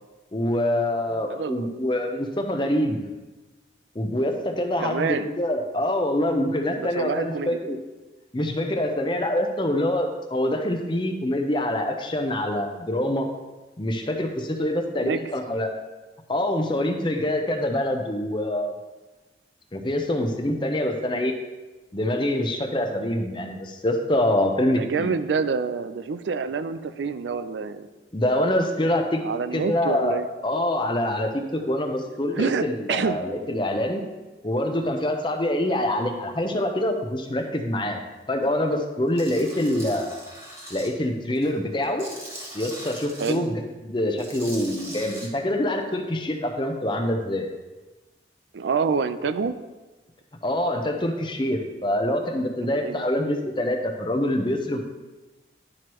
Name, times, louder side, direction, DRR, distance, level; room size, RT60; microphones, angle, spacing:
voice 1, 0.3-3.0 3.9-7.8 8.3-13.3 13.8-15.7 16.3-18.7 19.7-21.3 21.9-25.2 28.1-29.2 29.5-34.0 34.4-38.0 38.3-40.1 40.7-42.1 42.5-47.5 50.4-54.8, left 1 dB, 25° left, 4 dB, 0.6 m, -25 dB
voice 2, 1.3-1.7 4.8-5.3 6.7-7.6 15.0-15.2 24.7-27.9 29.2-30.3 32.3-33.2 43.2-43.5 48.5-49.5 52.6-53.0, right 5 dB, 80° right, 11 dB, 0.4 m, -27 dB
Tools, 39.2-40.9 41.4-43.3 44.1-45.3, right 1 dB, 15° right, 1.1 m, -40 dB
11.0 x 4.6 x 3.1 m, 1.2 s
head